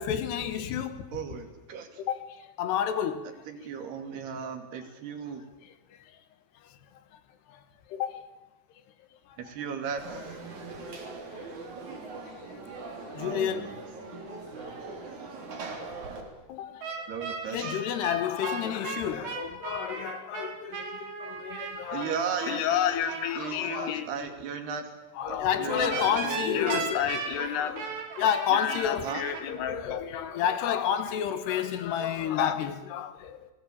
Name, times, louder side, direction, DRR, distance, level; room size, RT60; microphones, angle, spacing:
voice 1, 0.0-1.1 2.1-3.3 7.5-7.6 7.9-8.2 9.3-9.4 12.2-12.5 12.8-13.7 14.6-14.7 16.5-17.0 17.5-22.1 22.4-24.1 25.2-33.5, left 9 dB, 80° left, 3.6 m, -30 dB
voice 2, 1.1-2.0 3.5-5.5 9.4-10.4 13.2-13.8 17.1-17.8 21.9-24.9 25.3-27.1 29.0-29.2, right 6 dB, 75° right, 4.6 m, -36 dB
Conversation / Crowd, 10.0-16.2, right 3 dB, 45° right, 4.6 m, -41 dB
sound 1, 16.8-23.3 25.8-29.4, right 5 dB, 90° right, 5.4 m, -36 dB
29.0 x 19.5 x 8.7 m
omnidirectional pair, 4.8 m